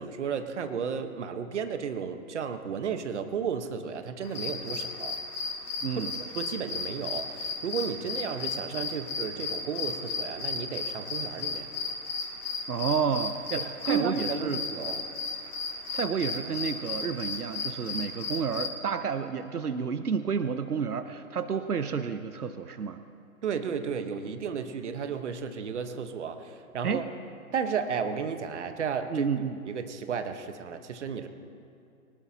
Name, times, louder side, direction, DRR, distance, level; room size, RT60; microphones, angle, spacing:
voice 1, 0.0-5.2 6.2-11.7 13.6-15.1 23.4-27.0 27.5-29.3 29.7-31.3, right 6 dB, 50° right, 8 dB, 1.3 m, -33 dB
sound 1, 4.2-18.7, left 4 dB, 80° left, 2.7 m, -35 dB
voice 2, 5.8-6.1 12.7-14.6 15.9-23.0 26.8-27.1 29.1-29.6, right 6 dB, 90° right, 10 dB, 1.0 m, -30 dB
23.0 x 19.5 x 2.9 m, 2.5 s
hypercardioid pair, 145°, 44 cm